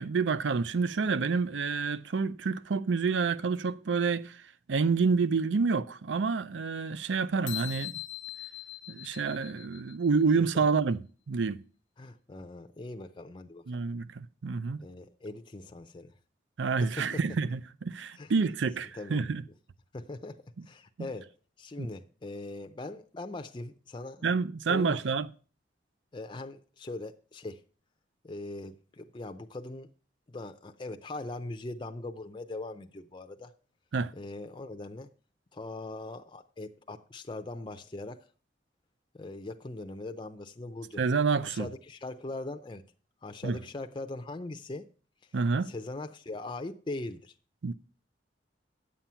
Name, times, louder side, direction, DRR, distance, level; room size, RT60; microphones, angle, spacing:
voice 1, 0.0-4.4 4.7-7.9 8.9-11.0 11.3-11.6 13.7-14.8 16.6-19.4 21.0-21.1 21.8-21.9 24.2-25.3 33.9-34.1 41.0-41.7 43.4-43.6 45.3-45.7 47.6-47.7, right 4 dB, 80° right, 0.5 m, -28 dB
sound 1, 7.5-10.1, left 16 dB, 85° left, 0.8 m, -41 dB
voice 2, 12.0-13.6 14.8-16.1 16.8-17.0 18.2-18.3 18.9-19.2 19.9-21.3 21.6-24.2 24.7-25.0 26.1-27.6 28.2-29.9 30.3-33.5 34.1-35.1 35.5-38.2 39.1-41.0 41.4-42.8 43.2-44.9 45.6-47.3, left 2 dB, 25° left, 0.5 m, -40 dB
10.0 x 7.5 x 5.6 m
head